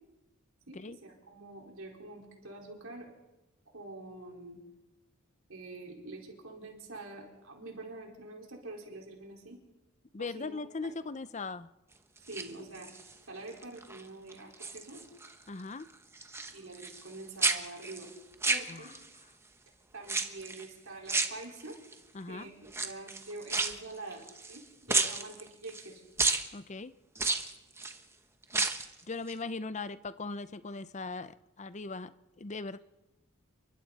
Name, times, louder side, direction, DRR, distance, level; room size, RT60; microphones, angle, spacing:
voice 1, 0.7-3.1 3.7-4.6 5.5-9.6 10.2-10.6 12.3-12.9 13.3-15.0 16.3-18.1 18.5-18.9 19.9-21.8 22.3-24.6 24.9-26.0, right 2 dB, 75° right, -1 dB, 4.8 m, -46 dB
voice 2, 10.1-11.7 15.5-15.9 18.7-18.9 22.1-22.5 26.5-26.9 28.5-28.7 29.1-32.1 32.4-32.8, left 3 dB, 35° left, 14 dB, 0.6 m, -39 dB
sound 1, 12.2-13.1 13.6-14.0 14.3-15.3 15.6-17.1 17.4-19.2 20.0-20.7 21.1-21.9 22.7-24.6 24.9-25.9 26.2-26.5 27.2-28.0 28.4-28.9 29.3-29.4, right 3 dB, 10° right, 1.1 m, -32 dB
29.0 x 23.5 x 4.2 m, 1.0 s
head